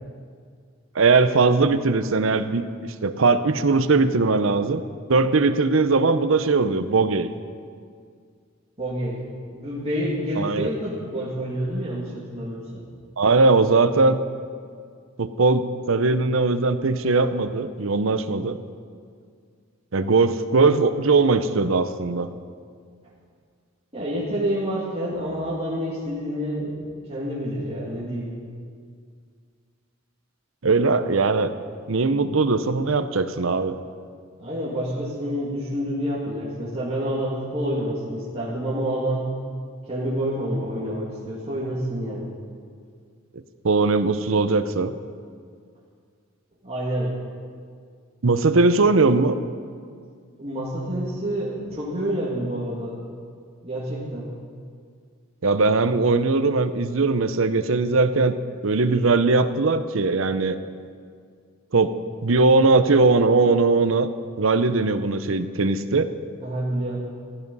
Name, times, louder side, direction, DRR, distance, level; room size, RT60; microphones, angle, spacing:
voice 1, 0.9-4.8 5.1-7.3 10.4-10.7 13.2-14.2 15.2-18.6 19.9-22.3 30.6-31.5 31.9-33.8 43.6-44.9 48.2-49.3 55.4-58.4 58.6-60.6 61.7-62.0 62.2-64.1 64.4-66.1, right 3 dB, 70° right, 11 dB, 0.7 m, -20 dB
voice 2, 8.8-9.2 9.5-12.9 23.9-28.3 34.4-39.3 39.9-42.3 46.6-47.1 50.4-53.0 53.6-54.3 66.4-67.0, equal, 30° right, -8 dB, 2.3 m, -28 dB
16.0 x 12.0 x 5.5 m, 2.1 s
head